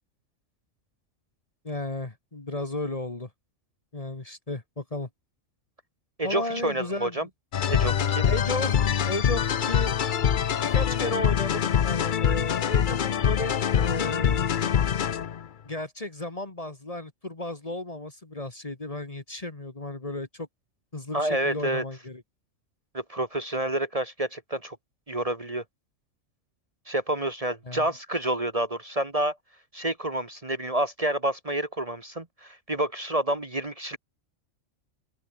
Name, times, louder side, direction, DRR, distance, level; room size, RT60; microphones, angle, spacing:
voice 1, 1.6-3.3 3.9-5.1 6.2-7.3 8.3-10.0 10.6-14.5 15.6-20.5 20.9-22.2 27.7-27.9, left 2 dB, 30° left, 1.7 m, -34 dB
voice 2, 6.2-7.3 7.7-8.2 21.1-21.8 22.9-24.8 25.1-25.6 26.9-29.4 29.7-34.0, right 1 dB, 25° right, 1.6 m, -29 dB
sound 1, 7.5-15.5, left 8 dB, 45° left, 0.7 m, -24 dB
open air
omnidirectional pair, 1.4 m